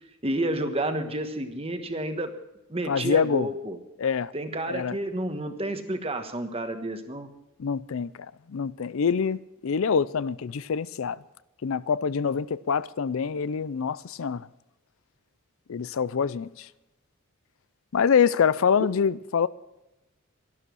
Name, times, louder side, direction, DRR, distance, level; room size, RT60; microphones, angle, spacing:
voice 1, 0.2-2.3 2.7-3.8 4.3-7.3, right 1 dB, 25° right, 1.3 m, -30 dB
voice 2, 2.9-3.5 4.0-4.3 4.7-5.0 7.6-11.2 11.6-14.5 15.7-16.7 17.9-19.5, left 6 dB, 70° left, 0.4 m, -25 dB
12.5 x 12.0 x 6.2 m
head